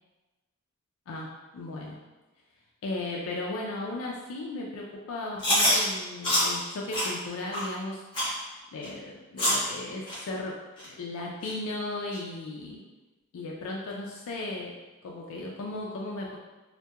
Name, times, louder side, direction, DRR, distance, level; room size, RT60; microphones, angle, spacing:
voice 1, 1.5-2.0 2.8-8.0 8.7-10.5 10.8-12.8 13.3-14.7 15.0-16.4, left 2 dB, 65° left, -2 dB, 0.3 m, -36 dB
Chewing mastication, 5.4-5.8 6.2-6.5 6.9-7.1 7.5-7.6 8.1-8.3 8.8-8.9 9.4-9.6 10.1-10.2 10.8-10.9 11.4-11.5 12.1-12.2, left 1 dB, 20° left, 0.9 m, -25 dB
2.7 x 2.2 x 2.3 m, 1.1 s
head